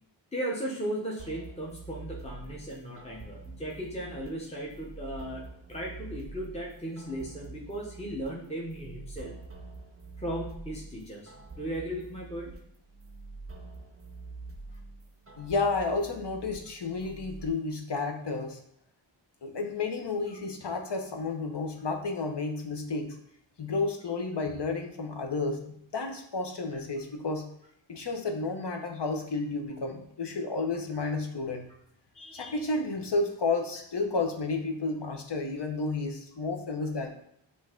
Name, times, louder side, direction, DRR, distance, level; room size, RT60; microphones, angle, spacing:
voice 1, 0.3-9.3 10.2-12.5 26.7-26.8 32.1-32.6, right 1 dB, 15° left, -3 dB, 0.9 m, -37 dB
sound 1, 1.2-17.5, right 3 dB, 30° right, 0.6 m, -46 dB
voice 2, 15.4-18.6 19.4-23.2 23.6-27.5 27.9-31.7 32.3-37.1, left 3 dB, 60° left, 5 dB, 0.8 m, -31 dB
5.1 x 2.7 x 3.7 m, 0.72 s
wide cardioid pair, 40°, 48 cm